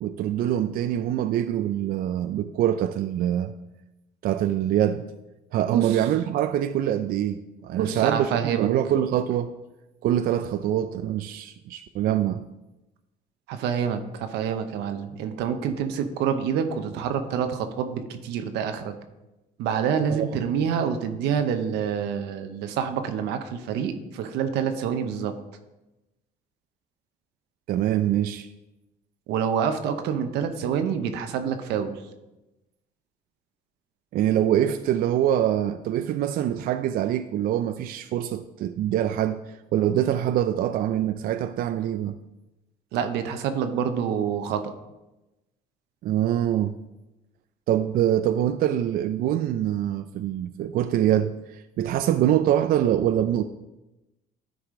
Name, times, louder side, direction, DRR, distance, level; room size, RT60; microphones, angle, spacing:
voice 1, 0.0-3.5 4.2-5.1 5.5-9.5 10.0-12.4 20.1-20.3 27.7-28.5 34.1-42.2 46.0-46.8 47.7-53.4, right 11 dB, 60° right, 0.4 m, -24 dB
voice 2, 7.8-8.7 13.5-18.9 19.6-25.3 29.3-32.0 42.9-44.7, right 7 dB, 90° right, 0.8 m, -27 dB
11.5 x 4.9 x 3.7 m
cardioid pair, 110°, 17 cm